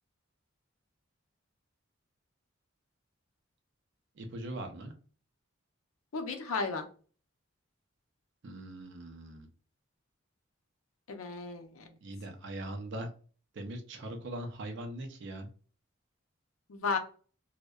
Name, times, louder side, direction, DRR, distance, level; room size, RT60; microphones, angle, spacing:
voice 1, 4.2-4.9 8.4-9.5 11.8-13.1 13.5-15.5, right 1 dB, 60° right, 5 dB, 0.4 m, -41 dB
voice 2, 6.1-6.8 11.1-11.8 16.7-17.0, left 4 dB, 90° left, 5 dB, 0.5 m, -34 dB
2.6 x 2.1 x 2.2 m, 0.39 s
head